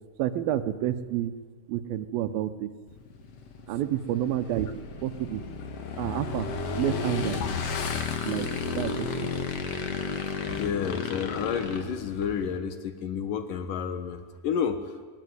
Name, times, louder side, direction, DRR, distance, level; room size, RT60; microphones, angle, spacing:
voice 1, 0.2-1.3 1.7-2.7 3.7-4.7 5.0-5.4 6.0-6.5 6.8-7.4 8.2-8.5 8.8-9.1, right 12 dB, 75° right, 11 dB, 2.6 m, -29 dB
Motorcycle / Engine, 2.9-12.6, left 5 dB, 50° left, 2.2 m, -33 dB
sound 1, 4.0-13.0, right 3 dB, 5° left, 6.7 m, -52 dB
voice 2, 10.5-14.9, left 7 dB, 65° left, 9 dB, 2.8 m, -30 dB
21.0 x 19.5 x 9.5 m, 1.5 s
omnidirectional pair, 4.4 m